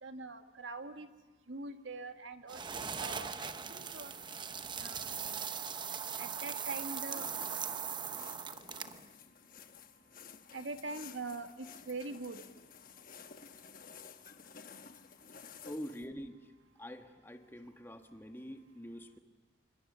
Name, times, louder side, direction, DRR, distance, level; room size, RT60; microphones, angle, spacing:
voice 1, 0.0-1.1 1.5-4.1 4.8-5.4 6.2-7.3 8.7-8.9 10.5-12.4, right 3 dB, 65° right, 7 dB, 1.6 m, -43 dB
sound 1, 2.5-9.1, right 6 dB, 25° right, 0.8 m, -40 dB
sound 2, 7.0-16.1, left 6 dB, 45° left, 1.1 m, -53 dB
voice 2, 15.6-16.5 16.8-19.2, equal, 10° left, 5 dB, 1.5 m, -45 dB
27.5 x 25.5 x 6.9 m, 1.2 s
head